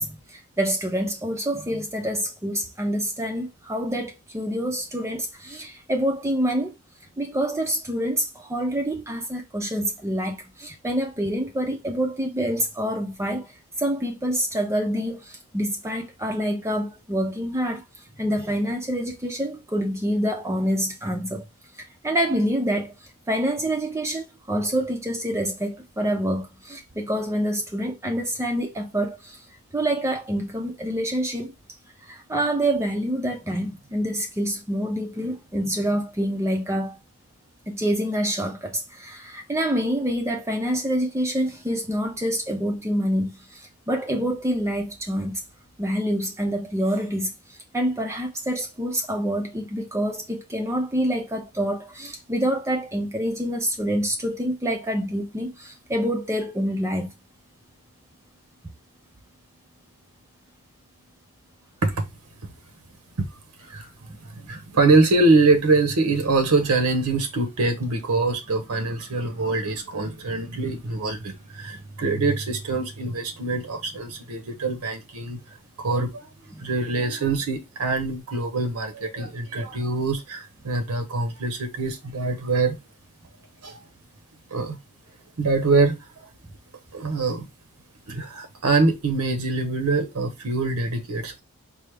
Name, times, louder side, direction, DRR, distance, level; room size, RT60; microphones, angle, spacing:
voice 1, 0.0-6.7 7.2-13.5 13.8-21.4 22.0-29.4 29.7-31.5 32.0-37.0 37.7-45.4 45.8-57.1 76.5-76.6, equal, 15° right, 0.4 m, -27 dB
voice 2, 63.6-75.4 75.8-76.3 76.6-82.8 83.6-83.9 84.5-84.8 85.4-86.3 86.9-87.5 88.1-91.4, right 3 dB, 80° right, 0.8 m, -24 dB
4.6 x 2.0 x 3.3 m
head